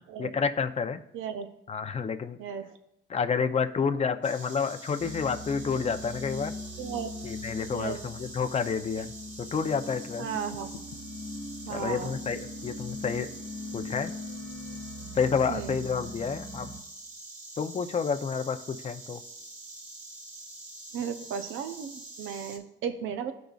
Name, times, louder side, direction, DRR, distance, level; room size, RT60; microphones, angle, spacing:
voice 1, 0.2-1.0 1.7-2.4 3.1-6.5 7.2-10.3 11.7-13.3 13.7-14.1 15.1-16.7 17.6-19.2, left 6 dB, 35° left, 9 dB, 0.6 m, -29 dB
voice 2, 1.1-1.5 2.4-2.8 6.8-7.1 7.7-8.0 10.2-10.7 11.6-12.2 15.5-15.8 20.9-23.3, right 8 dB, 80° right, 8 dB, 0.7 m, -35 dB
Insect, 4.2-22.6, right 2 dB, 40° right, 1.6 m, -46 dB
sound 1, 5.0-16.8, left 1 dB, 5° left, 1.3 m, -41 dB
sound 2, 9.0-9.4 10.3-11.0 12.2-12.4 13.9-14.2, left 11 dB, 80° left, 0.5 m, -51 dB
14.0 x 5.1 x 2.4 m, 0.80 s
cardioid pair, 90°, 20 cm